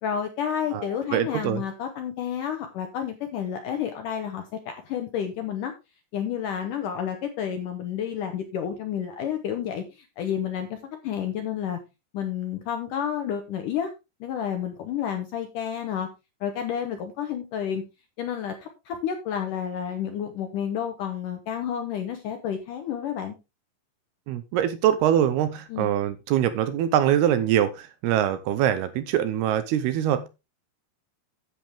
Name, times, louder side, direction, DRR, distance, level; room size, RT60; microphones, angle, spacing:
voice 1, 0.0-5.7 6.1-11.8 12.1-13.9 14.2-16.1 16.4-17.8 18.2-23.4 25.7-25.9, left 8 dB, 75° left, 5 dB, 2.0 m, -30 dB
voice 2, 0.7-1.6 24.3-30.3, right 10 dB, 80° right, 12 dB, 2.6 m, -23 dB
10.5 x 8.3 x 3.5 m, 0.26 s
omnidirectional pair, 4.9 m